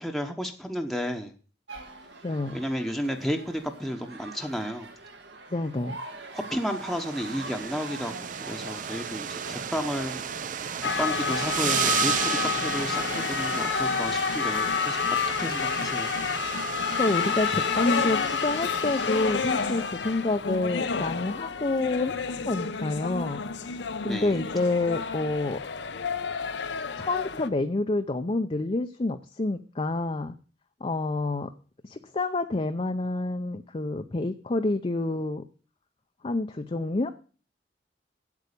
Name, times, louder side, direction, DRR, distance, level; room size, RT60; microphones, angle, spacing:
voice 1, 0.0-1.3 2.5-4.9 6.3-10.2 10.8-15.0 15.4-16.2 24.1-24.4, equal, ahead, 3 dB, 1.0 m, -32 dB
sound 1, 1.7-19.9, right 3 dB, 75° right, 1.7 m, -43 dB
voice 2, 2.2-2.6 5.5-6.0 16.7-22.1 22.5-23.4 24.0-25.6 27.0-30.4 30.8-31.5 31.8-35.4 36.2-37.1, left 2 dB, 35° left, 6 dB, 0.6 m, -28 dB
sound 2, 6.6-19.8, right 8 dB, 50° right, 0.5 m, -34 dB
sound 3, 10.8-27.5, left 6 dB, 80° left, 0.7 m, -29 dB
8.4 x 8.1 x 6.7 m, 0.39 s
head